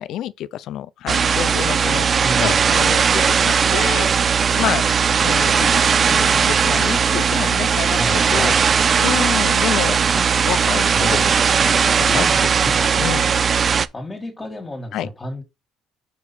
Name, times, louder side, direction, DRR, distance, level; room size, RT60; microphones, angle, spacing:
voice 1, 0.0-2.1 2.4-4.8 5.2-5.8 6.1-8.5 9.0-10.0 10.4-11.3 11.6-12.5 13.0-13.3 14.9-15.1, left 12 dB, 65° left, 0.4 m, -28 dB
sound 1, 1.1-13.9, right 6 dB, 35° right, 0.4 m, -18 dB
voice 2, 2.2-2.7 7.9-9.0 10.1-10.3 10.9-11.3 12.1-12.9 13.9-15.4, left 1 dB, 20° left, 1.6 m, -31 dB
4.9 x 4.8 x 4.2 m
cardioid pair, 110°, 0 cm